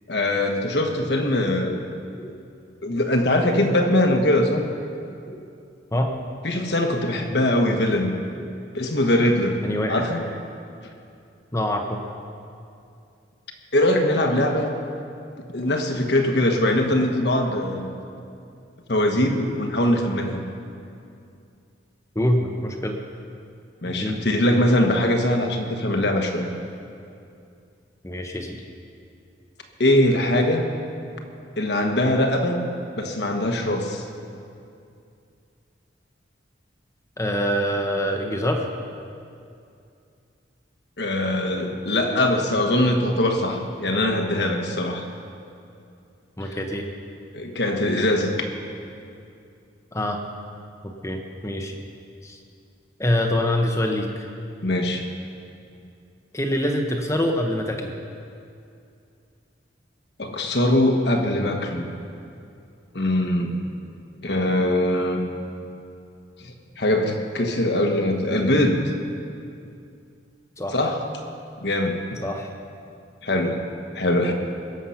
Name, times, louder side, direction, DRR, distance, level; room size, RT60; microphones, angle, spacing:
voice 1, 0.1-1.8 2.8-4.6 6.4-8.1 8.7-9.6 9.9-10.2 13.7-14.7 15.5-17.9 18.9-20.4 23.8-26.5 29.8-30.7 31.6-32.7 33.0-34.0 41.0-45.1 46.4-46.6 47.3-48.3 54.6-55.0 60.2-61.9 62.9-63.6 64.2-65.2 66.4-68.9 70.7-71.0 71.6-72.0 73.2-74.3, left 1 dB, 60° left, 4 dB, 1.3 m, -22 dB
voice 2, 9.6-10.1 11.5-12.0 22.1-23.0 23.9-24.3 28.0-28.6 37.2-38.7 46.4-46.9 49.9-50.2 50.8-51.7 52.2-52.4 53.0-54.3 56.3-57.9 70.6-70.8 72.2-72.5, left 1 dB, 15° left, 3 dB, 0.9 m, -25 dB
21.5 x 7.4 x 5.7 m, 2.5 s
head